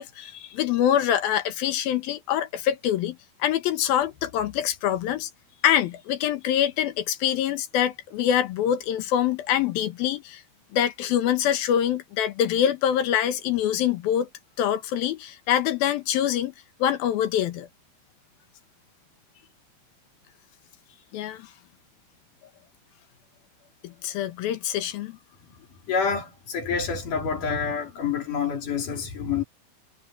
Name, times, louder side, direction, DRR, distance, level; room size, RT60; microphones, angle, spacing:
voice 1, 0.0-3.2 3.4-5.3 5.6-10.4 10.7-14.3 14.6-16.5 16.8-17.7 21.1-21.5 23.8-25.2, left 10 dB, 85° left, 3.2 m, -25 dB
voice 2, 25.9-29.4, left 6 dB, 60° left, 4.8 m, -27 dB
omnidirectional pair, 4.2 m